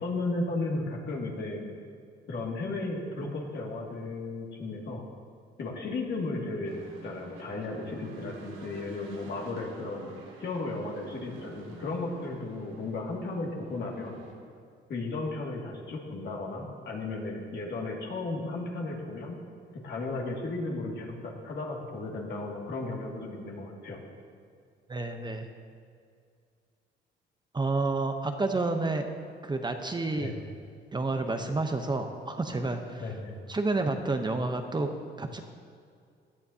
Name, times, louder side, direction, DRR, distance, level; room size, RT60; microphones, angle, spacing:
voice 1, 0.0-1.6 2.3-5.0 5.6-10.1 10.4-14.2 14.9-19.4 19.7-24.0 30.2-30.3 33.0-33.4, left 2 dB, 60° left, -1 dB, 2.2 m, -35 dB
sound 1, 6.6-14.3, right 3 dB, 85° right, 2.0 m, -49 dB
voice 2, 24.9-25.5 27.5-29.1 29.4-30.3 30.9-33.1 33.5-34.9 35.2-35.4, right 3 dB, 20° right, 6 dB, 0.8 m, -29 dB
17.0 x 10.5 x 2.8 m, 2.3 s
cardioid pair, 90°, 20 cm